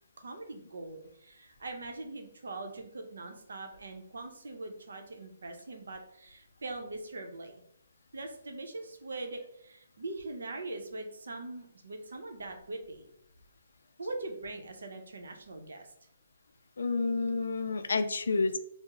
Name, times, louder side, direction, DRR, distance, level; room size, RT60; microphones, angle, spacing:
voice 1, 0.2-7.6 8.1-13.1 14.0-15.9, right 2 dB, 85° right, 5 dB, 0.6 m, -42 dB
voice 2, 16.8-18.6, left 3 dB, 75° left, 10 dB, 0.3 m, -29 dB
3.0 x 2.0 x 3.5 m, 0.70 s
hypercardioid pair, 180°, 0 cm